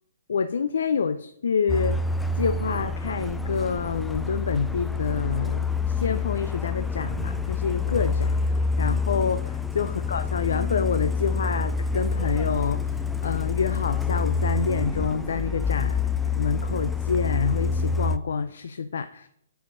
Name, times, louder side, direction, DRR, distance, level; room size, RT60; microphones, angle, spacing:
voice 1, 0.3-2.0 2.4-19.3, left 5 dB, 75° left, 11 dB, 0.4 m, -28 dB
Truck, 1.7-18.2, left 4 dB, 5° left, 0.3 m, -27 dB
6.2 x 4.8 x 5.3 m, 0.70 s
hypercardioid pair, 140°, 0 cm